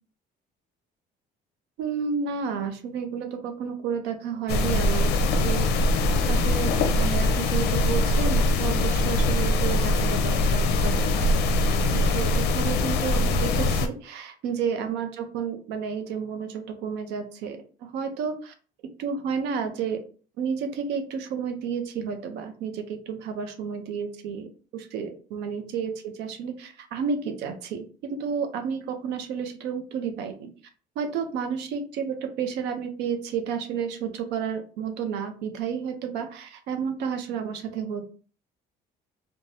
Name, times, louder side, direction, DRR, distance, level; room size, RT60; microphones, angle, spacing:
voice 1, 1.8-5.1 5.4-5.7 6.3-11.3 11.9-18.5 19.0-20.0 20.4-30.5 31.0-38.1, right 6 dB, 85° right, 7 dB, 0.6 m, -31 dB
sound 1, 4.5-13.9, left 2 dB, 75° left, 0.5 m, -22 dB
3.3 x 2.2 x 2.6 m, 0.40 s
cardioid pair, 110°, 17 cm